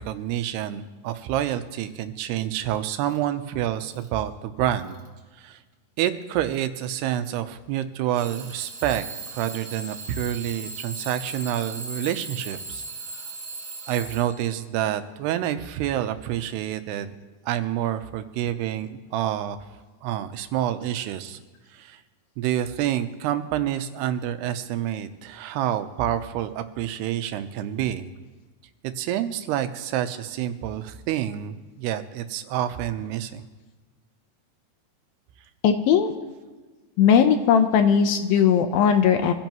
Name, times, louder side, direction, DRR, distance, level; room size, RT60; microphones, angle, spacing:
voice 1, 0.0-5.0 5.3-5.6 6.0-9.0 9.3-12.8 13.9-17.1 17.5-19.6 20.0-21.4 21.7-22.0 22.4-28.1 28.8-33.4, right 11 dB, 85° right, 10 dB, 2.8 m, -28 dB
Alarm / Clock, 3.1-3.3 3.8-4.2 4.8-5.2 6.1-6.2 8.1-14.5, right 3 dB, 50° right, 2.1 m, -38 dB
voice 2, 35.6-36.1 37.0-39.3, left 7 dB, 75° left, 7 dB, 2.5 m, -18 dB
25.0 x 16.0 x 3.1 m, 1.3 s
omnidirectional pair, 4.6 m